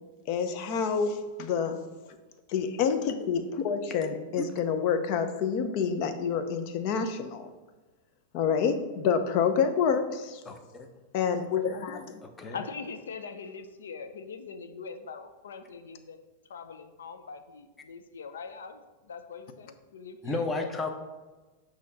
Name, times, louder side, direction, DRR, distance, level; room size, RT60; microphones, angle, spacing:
voice 1, 0.3-1.8 2.5-7.5 8.3-10.4 11.1-12.2, left 6 dB, 55° left, 8 dB, 0.7 m, -28 dB
voice 2, 10.4-10.9 12.2-12.6 20.2-20.9, left 3 dB, 20° left, 4 dB, 0.8 m, -33 dB
voice 3, 12.5-16.2 16.5-20.7, left 5 dB, 90° left, 9 dB, 0.5 m, -42 dB
6.2 x 2.9 x 5.6 m, 1.2 s
hypercardioid pair, 115°, 0 cm